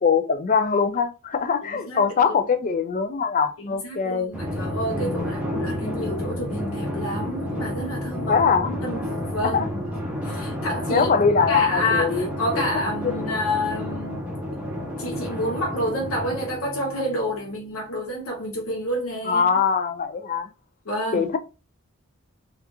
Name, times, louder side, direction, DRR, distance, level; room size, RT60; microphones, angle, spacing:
voice 1, 0.0-4.3 4.9-6.0 8.3-8.8 9.4-9.7 10.9-12.3 12.5-12.6 13.0-13.4 19.3-20.5 21.1-21.4, left 5 dB, 40° left, 0.4 m, -23 dB
voice 2, 1.7-2.3 3.6-8.4 8.7-9.8 10.2-11.1 11.5-14.2 15.0-19.5 20.8-21.3, equal, 75° left, 0.7 m, -29 dB
Drum, 4.3-17.4, left 1 dB, 5° right, 0.9 m, -30 dB
2.9 x 2.4 x 3.4 m
head